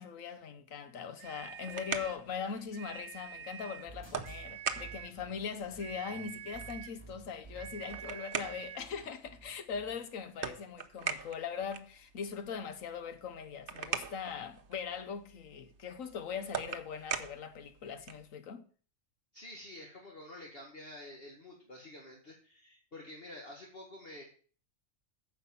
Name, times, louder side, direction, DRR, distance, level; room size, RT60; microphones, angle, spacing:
voice 1, 0.0-18.7, left 6 dB, 90° left, 1.4 m, -41 dB
sound 1, 1.2-2.3 2.7-3.9 4.2-5.2 5.8-7.0 7.6-8.9, right 9 dB, 85° right, 1.1 m, -47 dB
sound 2, 1.3-18.3, right 6 dB, 50° right, 0.9 m, -43 dB
sound 3, 3.9-9.9, right 4 dB, 20° left, 4.6 m, -52 dB
voice 2, 19.3-24.2, left 1 dB, 45° left, 2.0 m, -49 dB
9.7 x 5.9 x 7.0 m
omnidirectional pair, 1.3 m